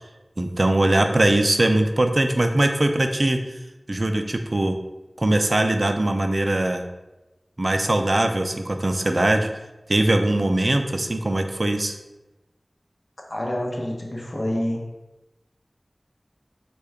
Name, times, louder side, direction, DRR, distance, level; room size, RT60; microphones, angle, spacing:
voice 1, 0.4-3.4 3.9-4.8 5.2-6.8 7.6-9.5 9.9-12.0, right 1 dB, 55° right, 6 dB, 0.3 m, -21 dB
voice 2, 13.3-14.8, left 1 dB, 60° left, -1 dB, 0.8 m, -27 dB
4.4 x 2.2 x 3.4 m, 1.0 s
wide cardioid pair, 40°, 0 cm